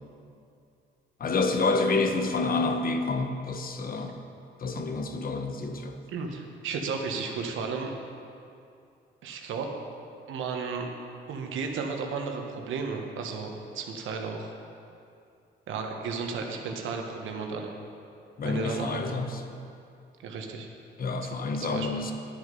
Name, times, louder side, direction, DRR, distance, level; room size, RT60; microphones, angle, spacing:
voice 1, 1.2-4.2 4.6-6.0 18.4-19.4 21.0-22.1, left 3 dB, 45° left, 6 dB, 1.0 m, -28 dB
voice 2, 6.1-7.9 9.2-9.7 10.3-10.9 11.3-14.5 15.7-17.7 18.4-19.2 20.2-20.7 21.7-22.0, right 5 dB, 80° right, 3 dB, 1.3 m, -33 dB
10.5 x 8.3 x 5.4 m, 2.5 s
cardioid pair, 90°, 20 cm